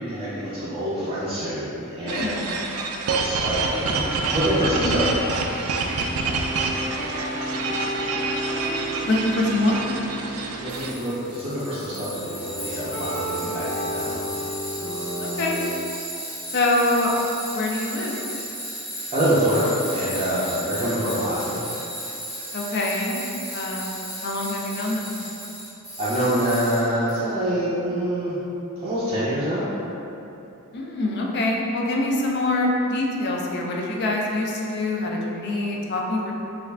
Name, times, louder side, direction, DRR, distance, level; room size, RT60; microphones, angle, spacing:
voice 1, 0.0-2.3 3.1-5.0 10.6-14.1 19.1-21.6 26.0-28.4 28.8-29.7, equal, 25° right, -11 dB, 0.5 m, -25 dB
voice 2, 2.0-2.4 4.8-5.0 9.1-9.8 15.2-15.6 16.5-17.2 17.5-18.2 22.5-23.2 23.5-25.2 30.7-36.3, left 2 dB, 50° left, -1 dB, 0.4 m, -25 dB
sound 1, 2.1-10.9, right 3 dB, 85° right, 0.3 m, -27 dB
sound 2, 5.5-15.7, equal, 70° left, 0.8 m, -33 dB
Tools, 10.7-27.2, equal, 5° right, 0.9 m, -35 dB
3.2 x 2.4 x 3.3 m, 2.9 s
head